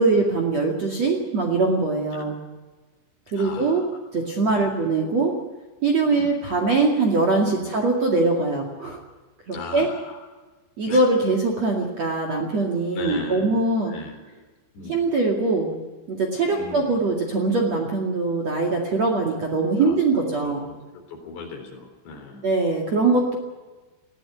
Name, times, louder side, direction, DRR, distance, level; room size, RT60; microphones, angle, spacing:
voice 1, 0.0-2.4 3.3-3.8 4.1-5.3 5.8-9.0 9.5-9.9 10.8-13.9 14.9-15.8 16.1-20.6 22.4-23.4, right 3 dB, 45° right, 1 dB, 2.6 m, -22 dB
voice 2, 3.3-4.0 4.5-4.7 6.1-6.3 7.5-7.7 9.5-10.4 10.9-11.0 12.9-14.2 14.7-15.0 16.5-17.1 19.8-20.0 20.4-22.5, left 3 dB, 60° left, 3 dB, 5.8 m, -38 dB
21.0 x 15.5 x 9.1 m, 1.2 s
omnidirectional pair, 5.7 m